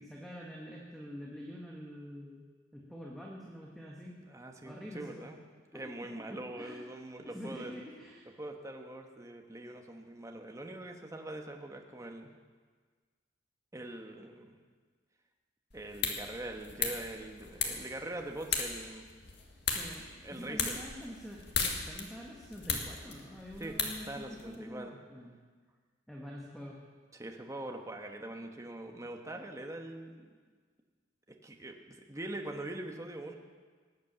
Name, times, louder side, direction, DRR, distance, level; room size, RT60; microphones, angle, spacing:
voice 1, 0.0-4.2 4.6-5.3 5.7-6.1 6.6-6.8 7.2-8.3 19.6-25.3 26.1-26.8, equal, ahead, -3 dB, 1.5 m, -46 dB
voice 2, 4.0-5.4 5.7-7.7 8.4-12.3 13.7-14.6 15.7-19.1 20.2-20.8 21.6-21.7 23.6-25.0 27.1-30.3 31.3-33.4, right 1 dB, 15° right, 3 dB, 1.2 m, -43 dB
sound 1, 15.7-24.6, left 5 dB, 60° left, 2.0 m, -37 dB
19.0 x 8.5 x 7.5 m, 1.5 s
head